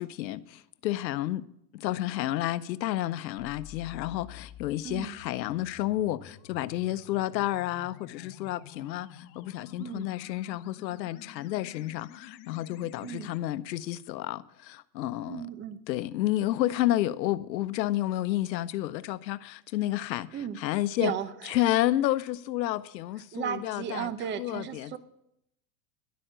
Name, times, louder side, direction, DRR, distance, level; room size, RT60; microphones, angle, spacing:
voice 1, 0.0-1.4 1.7-15.5 15.9-20.3 20.6-21.1 21.5-24.1 24.4-25.0, left 14 dB, 85° left, 0.8 m, -30 dB
sound 1, 3.4-13.4, left 9 dB, 40° left, 1.2 m, -50 dB
voice 2, 4.8-5.2 9.8-10.1 13.0-13.3 15.3-15.8 20.3-20.6 21.0-21.6 23.3-25.0, right 8 dB, 20° right, 0.7 m, -35 dB
11.5 x 8.5 x 9.1 m
supercardioid pair, 125°, 50 cm